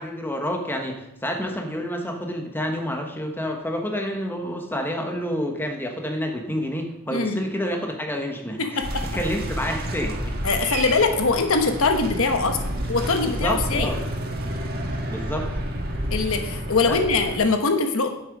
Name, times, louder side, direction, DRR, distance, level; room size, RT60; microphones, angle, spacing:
voice 1, 0.0-10.2 13.2-14.0 15.1-15.5 16.9-17.0, equal, 10° left, 3 dB, 1.4 m, -29 dB
voice 2, 8.6-9.0 10.4-13.9 16.1-18.1, left 4 dB, 65° left, 6 dB, 1.1 m, -22 dB
sound 1, 8.8-17.4, right 1 dB, 45° right, 1.6 m, -30 dB
9.9 x 7.9 x 5.3 m, 0.88 s
head